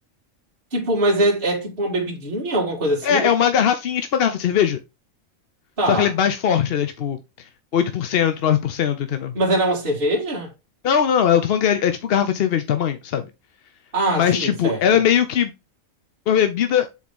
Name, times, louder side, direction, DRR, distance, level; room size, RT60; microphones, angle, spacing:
voice 1, 0.7-3.3 5.8-6.1 9.3-10.5 13.9-15.0, right 1 dB, 40° right, 2.0 m, -22 dB
voice 2, 3.0-4.8 5.9-7.2 7.7-9.3 10.8-13.2 14.2-15.5 16.3-16.9, left 9 dB, 55° left, 0.7 m, -20 dB
7.3 x 4.1 x 3.6 m
omnidirectional pair, 1.4 m